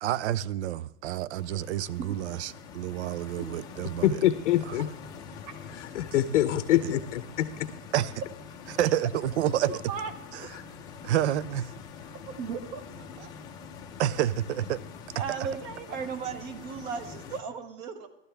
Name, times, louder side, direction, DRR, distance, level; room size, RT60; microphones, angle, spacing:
voice 1, 0.0-4.2 6.8-6.9 7.9-8.1 8.7-9.8 10.3-10.5 11.0-11.7 14.0-14.8, right 12 dB, 55° right, 0.5 m, -29 dB
Stream, 1.4-17.4, left 6 dB, 10° left, 0.6 m, -45 dB
voice 2, 4.0-4.9 5.7-7.7 10.5-10.6, left 12 dB, 60° left, 0.7 m, -25 dB
voice 3, 9.6-10.1 12.2-13.3 15.2-18.1, right 6 dB, 30° right, 0.9 m, -36 dB
15.0 x 12.5 x 3.4 m
hypercardioid pair, 160°, 41 cm